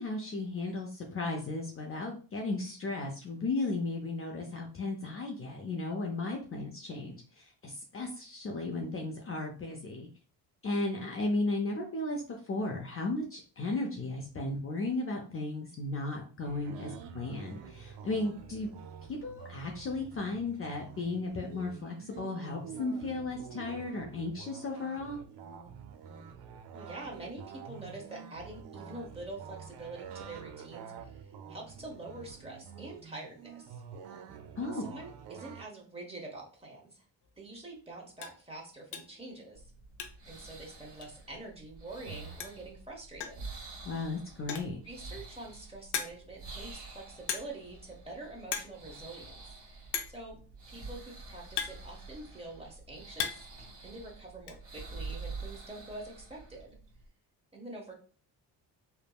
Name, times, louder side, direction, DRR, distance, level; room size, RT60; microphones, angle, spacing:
voice 1, 0.0-10.1 10.6-18.7 19.1-25.2 34.6-34.9 43.8-44.8, left 2 dB, 35° left, 0 dB, 0.6 m, -35 dB
sound 1, 16.4-35.6, right 7 dB, 75° right, 0.6 m, -48 dB
voice 2, 26.7-33.8 34.6-37.1 37.4-39.7 40.2-43.5 44.8-50.4 50.7-53.5 53.8-56.8 57.5-57.9, right 2 dB, 15° right, -1 dB, 1.1 m, -46 dB
sound 2, 37.2-37.4 37.8-37.9 38.2-38.4 38.9-39.2 39.5-40.4 40.6-40.7 41.0-41.1 42.1-42.2 42.4-42.7 43.2-43.5 44.3-44.8 45.4-45.5 45.9-46.4 47.3-47.7 48.0-48.2 48.4-48.8 49.0-49.1 49.9-50.3 51.1-52.4 52.8-53.6 53.8-54.6, left 8 dB, 75° left, 0.6 m, -37 dB
sound 3, 39.5-57.1, right 3 dB, 50° right, 1.3 m, -47 dB
3.4 x 2.0 x 2.3 m, 0.40 s
supercardioid pair, 70°, 41 cm